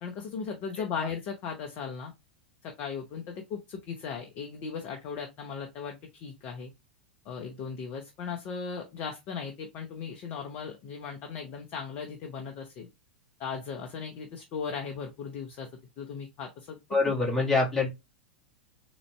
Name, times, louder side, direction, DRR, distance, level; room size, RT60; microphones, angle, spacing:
voice 1, 0.0-2.1 2.6-6.7 7.2-12.9 13.4-15.7 16.0-16.8, left 6 dB, 40° left, 3 dB, 0.8 m, -37 dB
voice 2, 16.9-17.9, left 3 dB, 10° left, -3 dB, 2.0 m, -25 dB
4.0 x 3.1 x 3.2 m, 0.22 s
figure-of-eight pair, 95°, 6 cm